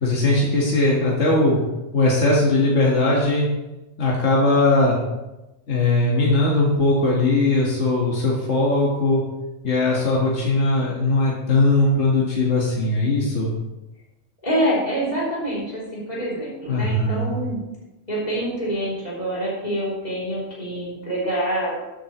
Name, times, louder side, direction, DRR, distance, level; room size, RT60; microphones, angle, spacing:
voice 1, 0.0-1.6 1.9-3.4 4.0-5.0 5.7-9.2 9.6-13.5 16.7-17.3, left 2 dB, 65° left, -5 dB, 2.0 m, -19 dB
voice 2, 14.4-17.6 18.1-21.8, right 1 dB, 35° left, -7 dB, 3.5 m, -26 dB
12.5 x 8.3 x 3.1 m, 1.0 s
omnidirectional pair, 1.3 m